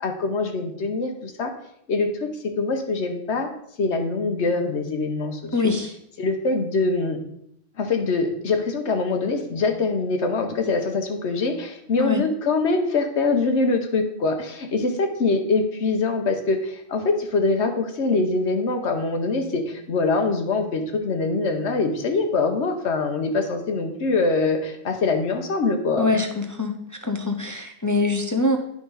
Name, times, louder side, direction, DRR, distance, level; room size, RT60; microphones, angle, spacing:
voice 1, 0.0-1.5 1.9-3.5 3.8-5.7 6.2-7.2 7.8-26.1, left 3 dB, 85° left, 5 dB, 1.3 m, -24 dB
voice 2, 5.5-5.9 12.0-12.2 26.0-26.8 27.0-28.6, left 3 dB, 25° left, 4 dB, 0.4 m, -23 dB
9.0 x 5.3 x 3.9 m, 0.74 s
omnidirectional pair, 1.1 m